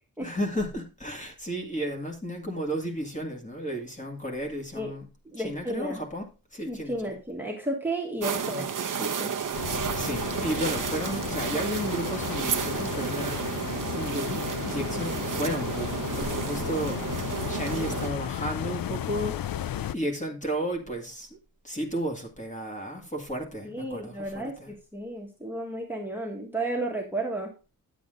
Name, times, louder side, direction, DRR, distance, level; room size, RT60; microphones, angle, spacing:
voice 1, 0.2-5.1 5.4-7.1 8.5-8.6 9.3-13.4 13.9-19.6 19.9-21.4 21.6-24.7, equal, 20° left, 2.2 m, -33 dB
voice 2, 5.2-6.0 6.7-8.6 9.0-9.4 23.6-27.5, right 1 dB, 5° right, 1.6 m, -33 dB
sound 1, 8.2-18.1, right 7 dB, 60° right, 0.8 m, -32 dB
sound 2, 9.5-19.9, left 11 dB, 75° left, 0.5 m, -34 dB
9.6 x 8.2 x 3.8 m
wide cardioid pair, 170°, 35 cm